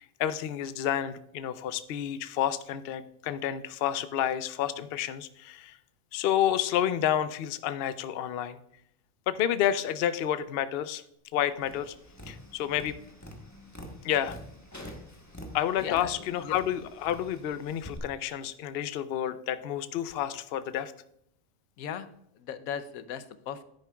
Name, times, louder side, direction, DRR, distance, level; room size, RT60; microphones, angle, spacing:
voice 1, 0.0-5.8 6.1-8.6 9.3-11.0 11.3-11.9 12.3-13.0 14.0-14.4 15.5-20.9, left 10 dB, 60° left, 12 dB, 0.6 m, -30 dB
Tap, 11.6-18.0, left 1 dB, 15° left, 1.1 m, -46 dB
voice 2, 15.8-16.1 16.4-16.6 21.8-22.1 22.4-23.6, left 8 dB, 85° left, 12 dB, 1.1 m, -37 dB
10.5 x 9.3 x 2.3 m, 0.74 s
omnidirectional pair, 1.5 m